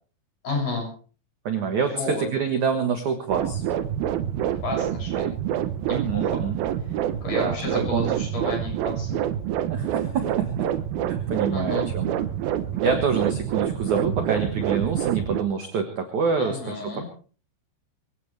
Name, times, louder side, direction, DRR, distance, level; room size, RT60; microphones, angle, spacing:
voice 1, 0.4-0.9 1.8-2.2 4.6-5.3 5.9-6.4 7.2-9.2 11.5-11.9 12.7-13.0 16.4-17.0, left 3 dB, 40° left, 0 dB, 8.4 m, -31 dB
voice 2, 1.5-3.6 5.9-6.6 7.3-7.6 7.9-8.1 9.7-10.7 11.1-12.2 12.8-17.0, right 6 dB, 60° right, 6 dB, 2.2 m, -26 dB
sound 1, 3.3-15.4, right 10 dB, 75° right, 2.2 m, -27 dB
23.5 x 16.5 x 3.4 m, 0.39 s
omnidirectional pair, 5.4 m